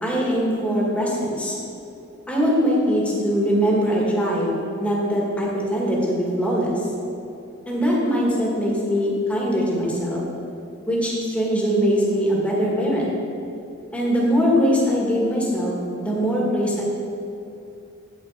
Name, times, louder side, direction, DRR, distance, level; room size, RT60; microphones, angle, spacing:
voice 1, 0.0-1.6 2.3-4.5 4.8-6.8 7.7-10.2 10.9-13.1 13.9-16.8, equal, 5° left, -4 dB, 2.0 m, -22 dB
9.0 x 7.9 x 5.0 m, 2.7 s
head